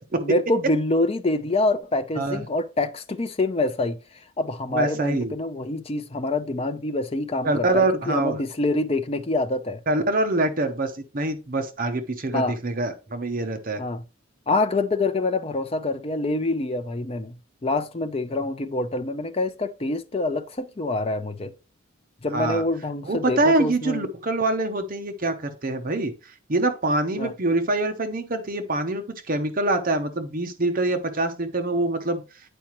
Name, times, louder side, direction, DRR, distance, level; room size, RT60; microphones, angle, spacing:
voice 1, 0.2-4.0 4.4-9.8 12.3-12.6 13.8-14.0 14.5-21.5 22.2-24.1 27.2-27.3, left 2 dB, 30° left, 0.6 m, -26 dB
voice 2, 4.7-5.3 7.4-8.4 9.9-13.8 22.3-22.6 23.0-32.2, right 2 dB, 45° right, 0.8 m, -25 dB
8.9 x 4.8 x 3.0 m
head